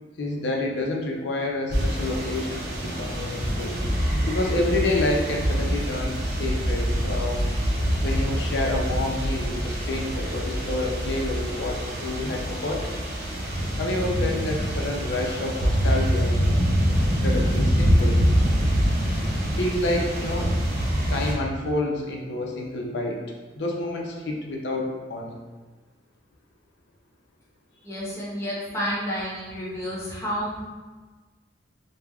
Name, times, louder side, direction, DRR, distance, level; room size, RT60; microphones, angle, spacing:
voice 1, 0.2-3.8 4.2-7.4 8.0-13.0 13.8-18.2 19.5-20.5 21.1-23.2 23.6-25.4, left 2 dB, 75° left, 0 dB, 0.5 m, -29 dB
sound 1, 1.7-21.3, equal, 55° right, 0.5 m, -25 dB
voice 2, 27.8-30.6, equal, 15° left, -8 dB, 0.7 m, -30 dB
2.3 x 2.1 x 3.4 m, 1.3 s
head